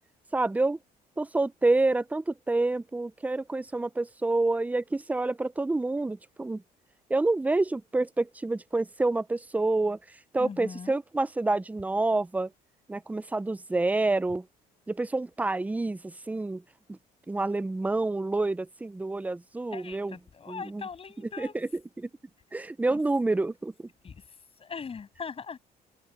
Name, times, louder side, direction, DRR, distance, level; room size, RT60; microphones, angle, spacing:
voice 1, 0.3-0.8 1.2-6.6 7.1-10.0 10.3-12.5 12.9-14.5 14.9-16.6 16.9-17.0 17.3-20.2 20.5-20.8 21.4-21.7 22.0-22.1 22.5-23.9, right 2 dB, 10° right, 0.5 m, -28 dB
voice 2, 10.4-11.0 19.7-21.6 22.9-23.0 24.0-25.6, left 6 dB, 35° left, 7.8 m, -41 dB
open air
cardioid pair, 110°, 17 cm